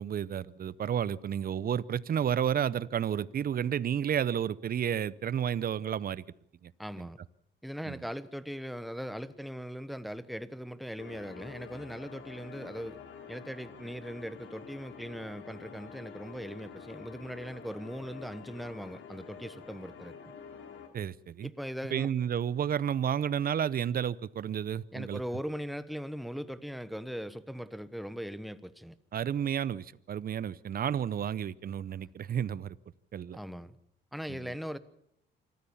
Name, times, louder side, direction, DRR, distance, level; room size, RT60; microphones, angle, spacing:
voice 1, 0.0-6.2 6.6-6.7 7.0-7.1 7.8-8.0 20.9-21.5 21.9-25.2 29.1-32.8 33.1-33.4 34.3-34.5, right 9 dB, 50° right, 0.7 m, -31 dB
voice 2, 6.8-7.2 7.6-13.0 13.3-20.1 21.4-22.1 24.9-28.9 33.3-33.8 34.1-34.8, equal, ahead, 1.1 m, -40 dB
sound 1, 11.0-20.9, left 6 dB, 75° left, 3.4 m, -48 dB
25.5 x 14.5 x 7.1 m
cardioid pair, 90°, 20 cm